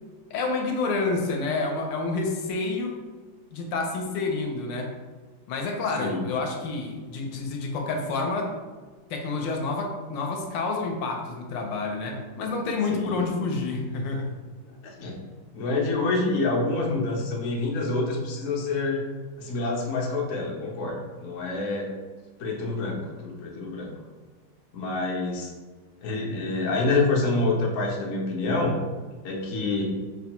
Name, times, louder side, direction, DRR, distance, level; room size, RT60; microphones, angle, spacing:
voice 1, 0.3-3.0 3.5-4.9 5.5-8.5 9.1-14.3, left 3 dB, 80° left, 2 dB, 1.3 m, -28 dB
voice 2, 14.8-15.2 15.5-19.1 19.4-21.9 22.4-23.9 24.7-25.5 26.0-28.8 29.2-29.9, left 3 dB, 60° left, -1 dB, 0.9 m, -27 dB
5.2 x 2.2 x 2.9 m, 1.4 s
omnidirectional pair, 2.0 m